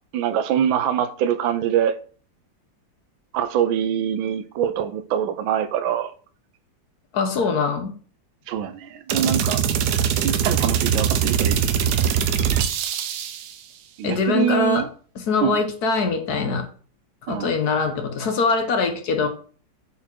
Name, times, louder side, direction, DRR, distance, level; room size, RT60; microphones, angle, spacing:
voice 1, 0.1-2.0 3.3-6.1 8.5-9.6 10.2-11.6 14.0-14.9 15.4-15.6 17.3-17.5, right 9 dB, 90° right, 1.4 m, -24 dB
voice 2, 7.1-7.9 14.0-14.8 15.2-16.7 17.3-19.3, left 4 dB, 60° left, 1.3 m, -22 dB
sound 1, 9.1-13.5, right 8 dB, 70° right, 1.1 m, -22 dB
5.6 x 4.3 x 4.4 m
omnidirectional pair, 2.1 m